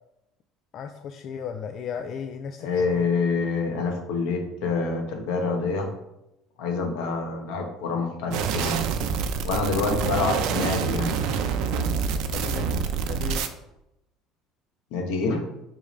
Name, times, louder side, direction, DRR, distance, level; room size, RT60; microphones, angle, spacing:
voice 1, 0.7-3.1 10.2-10.3 12.1-12.8 13.0-13.5, left 7 dB, 45° left, 7 dB, 0.4 m, -36 dB
voice 2, 2.6-5.9 6.6-8.8 9.4-11.1 14.9-15.5, left 4 dB, 80° left, 2 dB, 1.3 m, -26 dB
sound 1, 8.3-13.5, right 6 dB, 70° right, 0.6 m, -26 dB
5.1 x 3.6 x 5.3 m, 0.88 s
cardioid pair, 130°, 0 cm